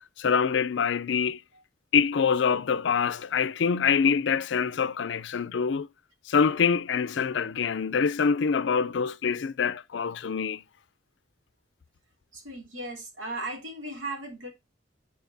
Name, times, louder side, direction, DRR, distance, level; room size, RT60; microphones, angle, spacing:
voice 1, 0.2-1.4 1.9-5.9 6.3-10.6, left 6 dB, 65° left, 0.4 m, -25 dB
voice 2, 12.3-14.5, right 2 dB, 80° right, 2.7 m, -36 dB
9.2 x 4.4 x 2.6 m
head